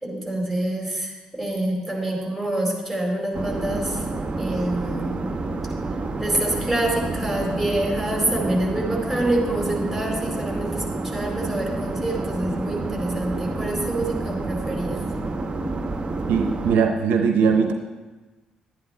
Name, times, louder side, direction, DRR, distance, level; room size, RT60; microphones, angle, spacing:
voice 1, 0.0-4.0 4.4-5.3 6.2-15.0, right 1 dB, ahead, -2 dB, 4.4 m, -26 dB
sound 1, 3.3-16.8, right 3 dB, 35° right, 1.0 m, -29 dB
voice 2, 16.3-17.7, right 6 dB, 70° right, 5 dB, 0.8 m, -20 dB
11.5 x 9.6 x 4.3 m, 1.3 s
hypercardioid pair, 45°, 3 cm